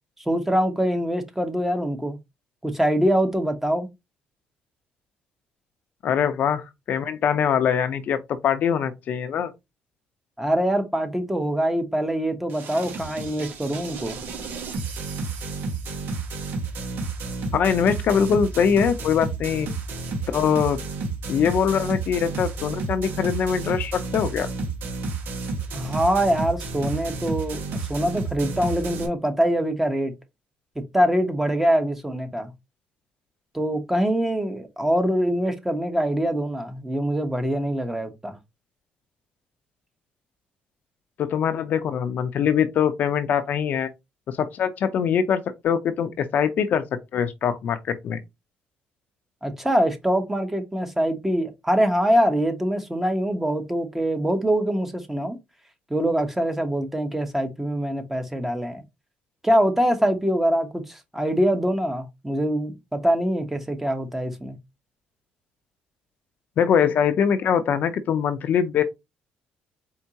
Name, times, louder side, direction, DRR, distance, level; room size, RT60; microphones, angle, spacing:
voice 1, 0.3-2.2 2.6-3.9 10.4-14.2 25.7-27.6 27.9-30.1 30.9-32.5 33.5-38.4 49.4-55.4 55.9-58.8 59.4-64.6, equal, 10° right, 1.1 m, -24 dB
voice 2, 6.0-9.5 17.5-19.7 20.3-20.8 21.3-24.5 41.2-43.9 44.3-46.8 47.1-48.2 66.6-68.8, left 7 dB, 55° left, 0.6 m, -23 dB
sound 1, 12.5-29.1, right 3 dB, 70° right, 1.4 m, -31 dB
4.5 x 3.5 x 2.9 m
cardioid pair, 115°, 4 cm